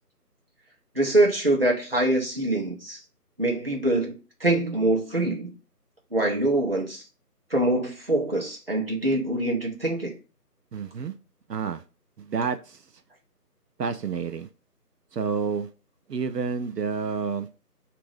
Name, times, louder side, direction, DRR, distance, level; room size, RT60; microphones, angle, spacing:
voice 1, 1.0-3.0 3.4-5.5 6.1-7.0 7.5-10.1, right 1 dB, 35° right, 0.7 m, -24 dB
voice 2, 10.7-11.1 11.5-11.8 12.2-12.8 13.8-14.5 15.1-15.7 16.1-17.5, right 5 dB, 75° right, 0.6 m, -29 dB
6.0 x 2.5 x 3.3 m
figure-of-eight pair, 165°, 49 cm